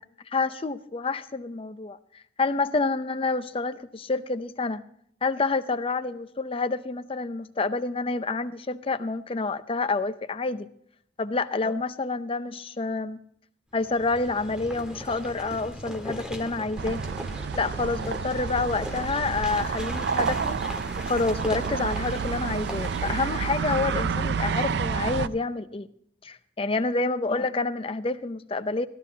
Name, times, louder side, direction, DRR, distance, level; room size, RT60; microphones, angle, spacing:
voice 1, 0.3-4.8 5.2-10.7 11.2-13.2 13.7-17.0 17.5-20.6 21.1-25.9 26.2-28.9, left 3 dB, 30° left, 11 dB, 0.6 m, -28 dB
sound 1, 13.8-23.7, equal, 5° right, 1.6 m, -39 dB
sound 2, 16.8-25.3, right 6 dB, 65° right, 0.4 m, -29 dB
17.0 x 13.0 x 2.8 m, 0.67 s
head